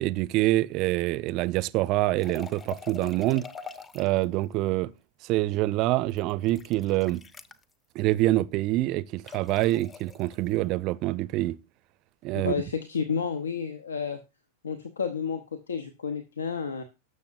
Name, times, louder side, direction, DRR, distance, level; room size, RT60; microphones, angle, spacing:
voice 1, 0.0-3.5 3.9-4.9 5.2-7.2 7.9-11.6 12.2-12.5, right 17 dB, 40° right, 0.5 m, -26 dB
sound 1, 2.2-4.2 6.1-7.6 9.3-10.4, left 6 dB, 20° left, 0.8 m, -43 dB
voice 2, 12.3-14.2 14.6-16.8, left 6 dB, 70° left, 1.1 m, -31 dB
19.0 x 6.8 x 2.6 m
figure-of-eight pair, 90°, 0 cm